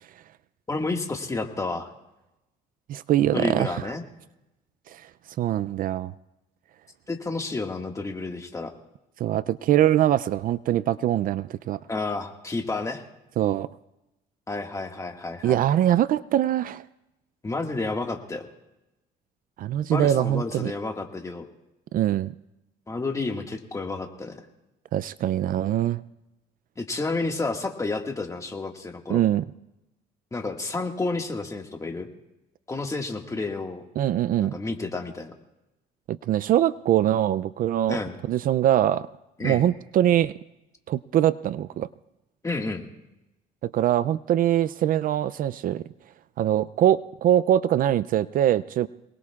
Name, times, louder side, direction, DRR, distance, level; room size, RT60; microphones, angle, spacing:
voice 1, 0.7-1.9 3.2-4.0 7.1-8.7 11.9-13.0 14.5-15.6 17.4-18.5 19.9-21.5 22.9-24.4 26.8-29.3 30.3-32.1 32.7-33.8 34.4-35.3 37.9-38.1 39.4-39.6 42.4-42.9, left 3 dB, 20° left, 3 dB, 1.8 m, -30 dB
voice 2, 2.9-3.8 4.9-5.1 5.4-6.1 9.2-11.8 13.4-13.7 15.4-16.8 19.6-20.7 21.9-22.3 24.9-26.0 29.1-29.4 34.0-34.6 36.1-38.0 38.3-39.1 39.4-40.3 40.9-41.9 43.6-45.8 46.4-48.9, right 11 dB, 55° right, 17 dB, 0.4 m, -23 dB
27.5 x 19.5 x 2.4 m, 0.95 s
cardioid pair, 110°, 17 cm